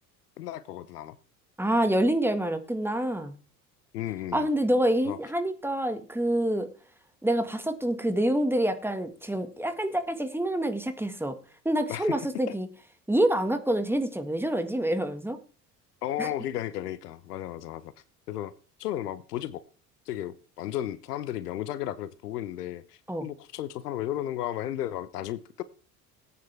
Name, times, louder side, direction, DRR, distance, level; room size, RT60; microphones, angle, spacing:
voice 1, 0.4-1.2 3.9-4.5 5.1-5.2 11.9-12.2 16.0-17.9 18.3-18.5 18.8-19.6 20.1-25.6, left 12 dB, 70° left, 0.9 m, -34 dB
voice 2, 1.6-3.3 4.3-6.7 7.2-11.4 11.7-12.7 13.1-15.4 16.2-16.3 23.1-23.3, right 1 dB, 5° right, 1.7 m, -27 dB
18.5 x 9.4 x 3.5 m
figure-of-eight pair, 65°, 48 cm